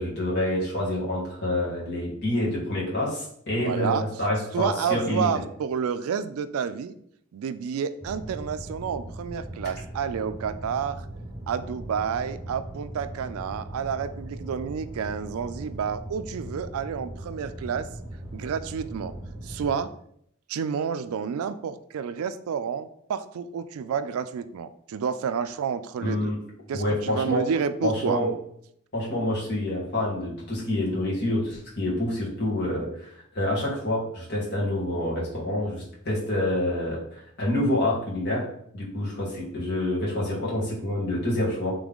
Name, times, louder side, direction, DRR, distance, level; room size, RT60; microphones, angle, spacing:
voice 1, 0.0-5.3 26.0-26.4 26.7-27.4 27.8-28.3 28.9-41.7, left 1 dB, 50° left, -5 dB, 1.7 m, -27 dB
voice 2, 3.6-4.1 4.5-7.0 7.3-11.1 11.5-17.9 18.3-19.1 19.4-19.9 20.5-26.3 26.7-28.2, right 7 dB, 75° right, 12 dB, 0.3 m, -30 dB
sound 1, 8.0-19.8, right 1 dB, 15° right, 1.0 m, -39 dB
3.7 x 3.3 x 3.5 m, 0.69 s
head